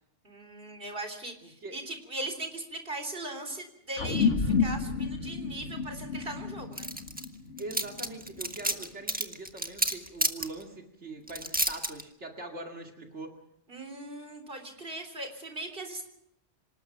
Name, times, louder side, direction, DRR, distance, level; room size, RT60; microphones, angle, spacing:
voice 1, 0.2-6.9 13.7-16.1, right 2 dB, 50° right, 6 dB, 3.8 m, -39 dB
voice 2, 1.4-1.8 7.6-13.3, right 2 dB, 75° right, 2 dB, 2.6 m, -42 dB
sound 1, 4.0-8.7, left 5 dB, 85° left, 2.1 m, -30 dB
sound 2, 6.8-7.2 7.6-10.5 11.3-12.0, right 1 dB, 10° right, 1.4 m, -29 dB
26.0 x 19.5 x 5.8 m, 0.77 s
omnidirectional pair, 1.2 m